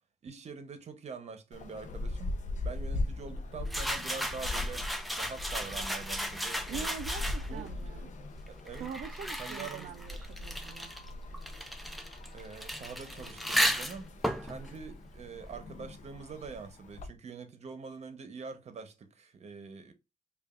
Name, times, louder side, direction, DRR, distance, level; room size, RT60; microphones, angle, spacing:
voice 1, 0.2-2.4 2.6-4.9 5.1-7.9 8.5-8.9 9.4-10.0 12.3-14.2 14.4-19.9, right 5 dB, 50° right, 0.8 m, -45 dB
sound 1, 1.5-17.1, left 2 dB, 60° left, 0.6 m, -40 dB
sound 2, 3.7-7.7 8.4-15.9, equal, ahead, 0.5 m, -35 dB
voice 2, 6.7-8.1 8.8-10.9, right 7 dB, 70° right, 0.4 m, -43 dB
5.1 x 2.4 x 2.4 m
cardioid pair, 125°, 14 cm